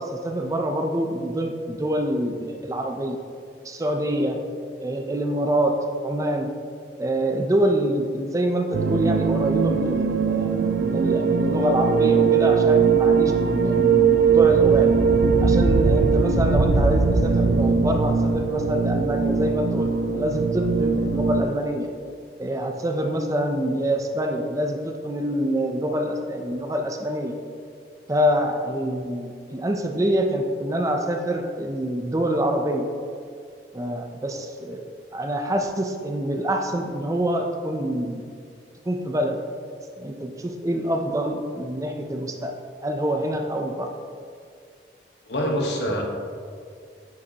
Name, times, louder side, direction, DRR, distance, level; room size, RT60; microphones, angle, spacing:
voice 1, 0.0-3.2 3.6-4.4 4.8-6.5 7.0-14.9 15.4-21.9 22.4-27.3 28.1-32.9 33.7-34.8 35.1-38.2 38.9-39.4 40.0-42.5 42.8-43.9, right 1 dB, 20° right, 3 dB, 0.4 m, -26 dB
sound 1, 8.7-21.4, right 5 dB, 80° right, 0.4 m, -20 dB
voice 2, 45.2-46.0, equal, 80° left, 0 dB, 1.2 m, -25 dB
9.4 x 5.2 x 2.8 m, 2.2 s
head